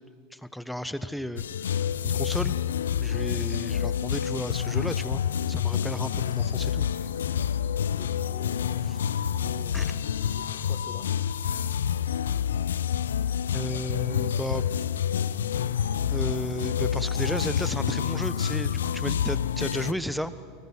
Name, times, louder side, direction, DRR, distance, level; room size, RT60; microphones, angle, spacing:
voice 1, 0.3-1.7 2.0-2.5 3.0-5.2 5.5-6.9 9.7-9.9 13.5-14.6 16.1-20.3, equal, ahead, 13 dB, 1.2 m, -33 dB
sound 1, 1.4-19.9, left 8 dB, 85° left, 0.6 m, -28 dB
voice 2, 7.7-8.9 9.4-11.1, left 11 dB, 55° left, 10 dB, 1.7 m, -45 dB
30.0 x 20.5 x 6.3 m, 2.1 s
hypercardioid pair, 90°, 0 cm